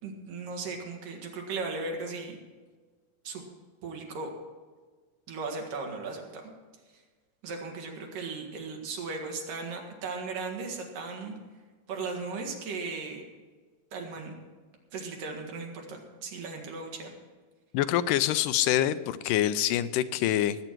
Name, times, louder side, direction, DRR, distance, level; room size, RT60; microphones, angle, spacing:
voice 1, 0.0-2.4 3.3-3.4 3.8-4.3 5.3-6.5 7.4-11.4 11.9-13.2 13.9-14.3 14.9-17.1, right 4 dB, 80° right, 1 dB, 3.6 m, -37 dB
voice 2, 17.7-20.6, left 12 dB, 85° left, 13 dB, 2.2 m, -25 dB
19.0 x 8.9 x 4.6 m, 1.4 s
omnidirectional pair, 3.8 m